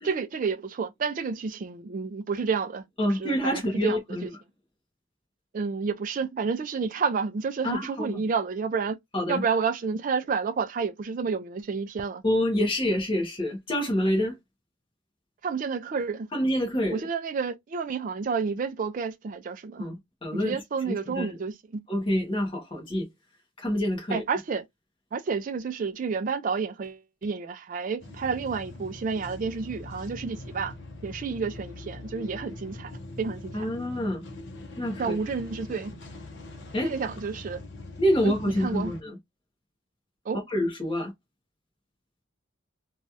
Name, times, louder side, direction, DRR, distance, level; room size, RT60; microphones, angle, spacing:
voice 1, 0.0-4.3 5.5-9.0 9.3-12.2 15.4-16.3 16.9-19.9 20.4-21.8 24.1-24.6 25.1-30.7 31.0-33.7 35.0-35.9 36.8-37.6 38.2-38.3 38.6-38.9 40.3-40.4, right 5 dB, 35° right, 0.3 m, -30 dB
voice 2, 3.0-4.3 7.6-8.2 9.1-9.4 12.2-14.4 16.3-17.0 19.8-20.5 20.9-21.3 21.9-23.1 23.6-24.2 33.5-34.2 34.8-35.0 36.7-36.9 38.0-39.2 40.3-41.1, equal, 25° left, 0.9 m, -27 dB
sound 1, 28.0-39.0, left 2 dB, 55° left, 0.7 m, -42 dB
3.1 x 2.3 x 2.7 m
head